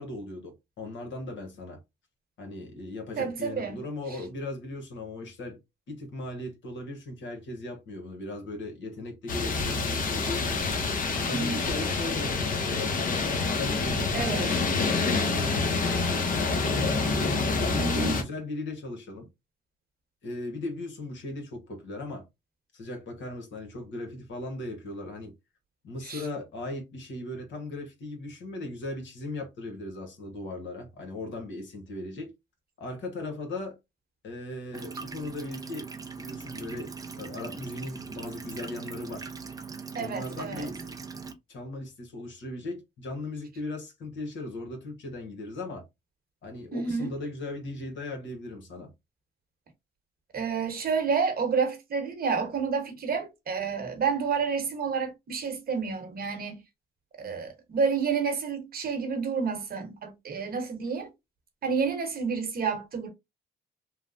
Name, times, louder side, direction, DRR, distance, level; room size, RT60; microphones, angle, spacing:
voice 1, 0.0-1.8 2.4-5.6 5.9-10.6 11.1-16.9 17.6-19.3 20.2-22.3 22.7-25.3 25.8-32.3 32.8-33.8 34.2-35.9 36.2-39.3 40.0-41.0 41.5-45.9 46.4-48.9 57.2-57.5, left 2 dB, 70° left, 1.1 m, -38 dB
voice 2, 3.2-3.8 11.3-11.6 14.1-14.5 17.7-18.2 26.0-26.2 39.9-40.7 46.7-47.1 50.3-56.6 57.2-61.1 61.6-63.1, right 5 dB, 50° right, 1.0 m, -29 dB
sound 1, 9.3-18.2, left 4 dB, 45° left, 0.7 m, -27 dB
sound 2, 34.7-41.3, right 5 dB, 20° right, 0.4 m, -40 dB
3.1 x 2.0 x 2.5 m
cardioid pair, 90°, 20 cm